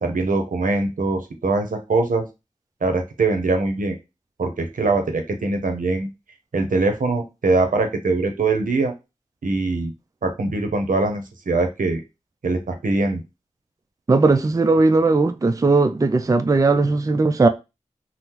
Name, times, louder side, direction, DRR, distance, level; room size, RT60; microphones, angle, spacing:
voice 1, 0.0-2.2 2.8-4.0 4.4-6.1 6.5-8.9 9.4-9.9 10.2-12.0 12.4-13.2, right 3 dB, 85° right, 0.6 m, -22 dB
voice 2, 14.1-17.5, right 3 dB, 25° right, 0.3 m, -18 dB
3.6 x 2.0 x 2.9 m
wide cardioid pair, 45°, 13 cm